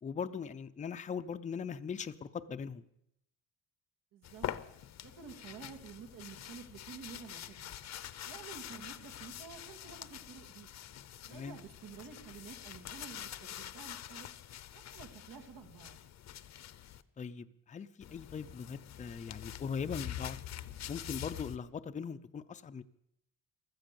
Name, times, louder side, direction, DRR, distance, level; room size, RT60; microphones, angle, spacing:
voice 1, 0.0-2.9 11.3-11.6 17.2-20.4 20.9-22.8, left 6 dB, 20° left, 10 dB, 0.5 m, -40 dB
voice 2, 4.1-4.5 5.0-7.8 8.3-10.7 11.3-14.3 14.7-16.0, right 6 dB, 80° right, 5 dB, 2.6 m, -51 dB
sound 1, 4.2-17.0 18.0-21.6, left 11 dB, 55° left, 0.7 m, -46 dB
15.5 x 13.0 x 6.9 m, 0.77 s
wide cardioid pair, 175°, 33 cm